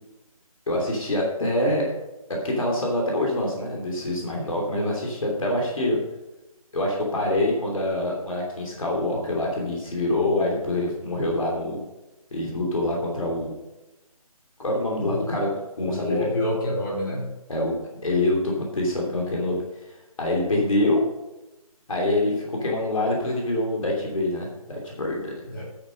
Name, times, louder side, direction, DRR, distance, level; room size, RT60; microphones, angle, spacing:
voice 1, 0.7-1.9 2.3-6.0 6.7-11.8 12.3-13.5 14.6-15.5 15.8-16.3 17.5-17.7 18.0-19.6 20.2-21.0 21.9-25.3, left 1 dB, 65° left, -1 dB, 3.0 m, -25 dB
voice 2, 15.0-15.4 15.8-17.3 25.5-25.6, left 1 dB, 35° left, -5 dB, 3.6 m, -28 dB
10.5 x 7.2 x 5.3 m, 0.99 s
figure-of-eight pair, 160°, 19 cm